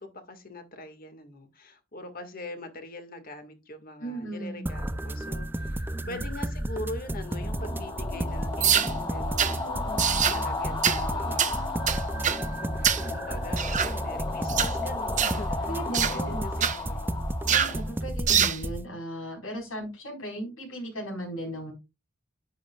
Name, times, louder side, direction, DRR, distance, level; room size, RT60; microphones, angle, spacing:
voice 1, 0.0-9.7 10.2-12.0 12.5-15.8 16.1-17.3, left 1 dB, 40° left, 1.9 m, -42 dB
voice 2, 4.0-4.7 6.0-6.2 8.4-8.8 9.6-10.3 15.7-16.5 17.5-21.7, right 1 dB, 75° left, 4.6 m, -37 dB
sound 1, 4.7-18.8, right 1 dB, 10° right, 0.4 m, -33 dB
sound 2, 7.1-18.2, left 3 dB, 20° left, 2.7 m, -35 dB
sound 3, 8.6-8.9 9.4-9.6 10.0-10.4 10.8-11.0 11.4-11.6 11.9-12.4 12.8-13.1 13.6-13.9 14.5-14.7 15.2-15.4 15.9-16.2 16.6-16.8 17.5-17.8 18.3-18.6, right 8 dB, 35° right, 0.9 m, -24 dB
10.5 x 10.0 x 2.4 m
head